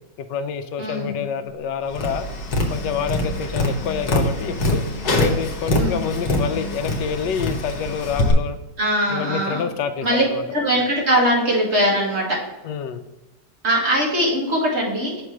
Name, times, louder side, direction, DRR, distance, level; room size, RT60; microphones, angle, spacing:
voice 1, 0.2-2.3 2.7-4.8 5.2-8.6 9.1-10.4 12.6-13.0, left 7 dB, 85° left, 8 dB, 1.2 m, -27 dB
voice 2, 0.8-1.2 5.7-6.1 8.8-9.6 10.0-10.2 10.5-12.4 13.6-15.2, equal, 40° right, -4 dB, 2.0 m, -21 dB
Tap, 1.9-8.3, left 1 dB, 65° left, 1.5 m, -24 dB
6.3 x 3.3 x 6.0 m, 1.0 s
omnidirectional pair, 1.8 m